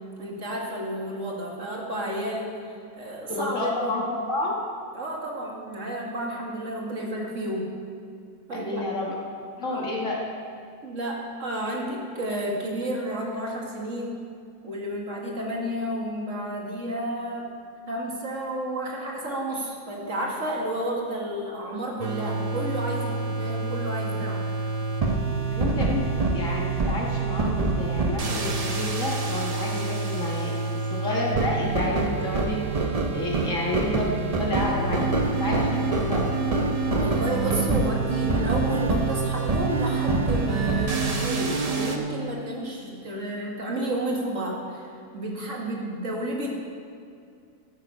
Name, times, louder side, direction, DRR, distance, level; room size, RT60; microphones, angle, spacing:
voice 1, 0.2-2.6 2.9-4.0 4.9-7.7 8.5-8.8 9.7-9.9 10.8-14.2 14.6-17.5 17.9-24.4 36.9-46.5, right 1 dB, 50° right, -1 dB, 2.1 m, -31 dB
voice 2, 3.3-4.6 8.5-9.2 9.6-10.2 23.1-23.2 25.5-30.5 30.9-35.1 35.4-36.3, left 2 dB, 55° left, -3 dB, 1.8 m, -30 dB
sound 1, 22.0-42.0, right 3 dB, 35° right, 0.7 m, -26 dB
13.5 x 9.3 x 5.4 m, 2.3 s
omnidirectional pair, 1.7 m